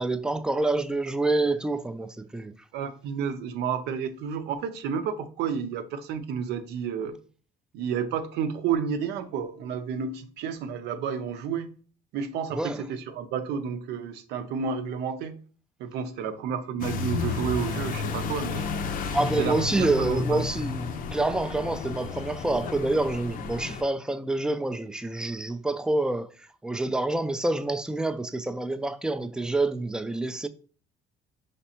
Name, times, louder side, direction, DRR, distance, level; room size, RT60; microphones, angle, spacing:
voice 1, 0.0-2.5 12.5-12.8 19.1-26.3 26.6-30.5, right 2 dB, 5° right, 0.3 m, -27 dB
voice 2, 2.7-7.2 7.7-11.7 12.1-15.3 15.8-18.7 19.4-20.6, right 7 dB, 85° right, 0.6 m, -31 dB
sound 1, 16.8-23.8, left 5 dB, 55° left, 0.6 m, -32 dB
5.1 x 3.3 x 2.8 m
cardioid pair, 110°, 17 cm